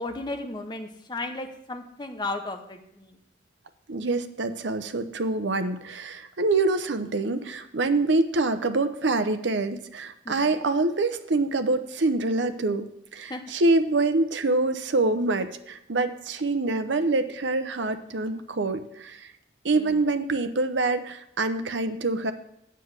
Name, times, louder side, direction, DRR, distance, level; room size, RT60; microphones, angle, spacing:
voice 1, 0.0-3.1 10.2-10.6 13.3-13.4 19.7-20.0, left 2 dB, 25° left, 5 dB, 0.8 m, -35 dB
voice 2, 3.9-19.3 19.6-22.3, right 2 dB, 80° right, 10 dB, 0.8 m, -25 dB
7.7 x 6.4 x 8.0 m, 0.78 s
head